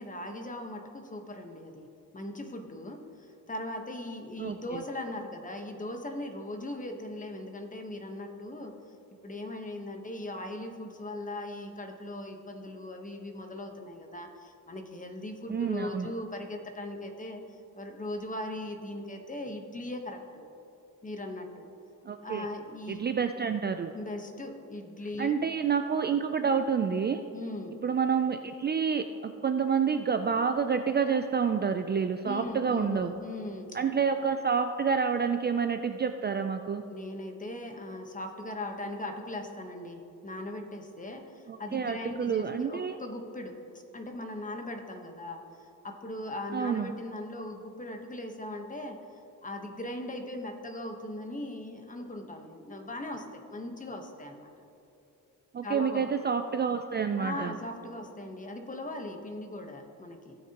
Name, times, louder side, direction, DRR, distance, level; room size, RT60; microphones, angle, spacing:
voice 1, 0.0-1.9 2.1-8.7 9.2-20.4 21.0-21.7 22.2-23.0 23.9-25.4 27.3-27.8 32.2-33.8 36.9-49.0 49.4-54.5 55.6-56.1 57.2-60.4, left 1 dB, 25° left, 4 dB, 1.1 m, -39 dB
voice 2, 4.4-4.8 15.5-16.1 22.1-22.5 22.9-23.9 25.2-27.2 27.8-33.1 33.7-36.8 41.5-43.0 46.5-46.9 55.5-57.5, right 6 dB, 30° right, 7 dB, 0.4 m, -28 dB
17.5 x 6.5 x 2.9 m, 2.7 s
cardioid pair, 105°, 33 cm